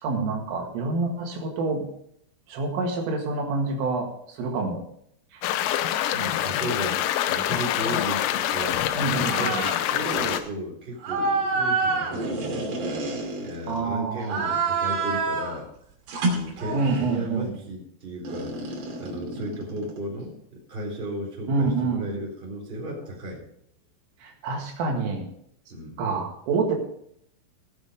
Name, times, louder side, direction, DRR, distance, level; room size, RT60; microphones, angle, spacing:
voice 1, 0.0-1.9 2.5-4.8 5.3-5.4 8.9-9.7 13.7-14.5 16.7-17.5 21.5-22.1 24.2-25.3 26.0-26.8, right 4 dB, 75° right, 1 dB, 4.3 m, -27 dB
sound 1, 5.4-10.4, left 11 dB, 85° left, 3.5 m, -26 dB
voice 2, 6.1-12.7 13.4-15.7 16.2-23.4 25.7-26.0, equal, 10° right, -2 dB, 3.2 m, -35 dB
sound 2, 9.1-9.8 10.0-10.4 11.0-13.8 14.2-15.6 16.1-17.2 18.2-20.0, right 3 dB, 60° right, 4.4 m, -28 dB
17.0 x 7.1 x 5.2 m, 0.70 s
omnidirectional pair, 5.9 m